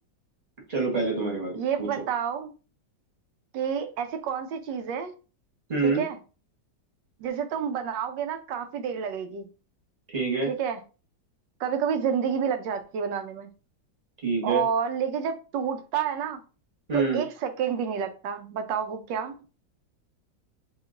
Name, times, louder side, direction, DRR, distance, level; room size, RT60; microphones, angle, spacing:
voice 1, 0.7-1.9 5.7-6.0 10.1-10.5 14.2-14.6 16.9-17.2, right 4 dB, 25° right, -1 dB, 1.3 m, -26 dB
voice 2, 1.5-2.5 3.5-5.1 5.8-6.2 7.2-9.5 10.5-10.8 11.6-13.5 14.4-16.4 16.9-19.3, right 7 dB, 80° right, 7 dB, 1.3 m, -29 dB
3.0 x 2.9 x 3.8 m, 0.34 s
omnidirectional pair, 1.9 m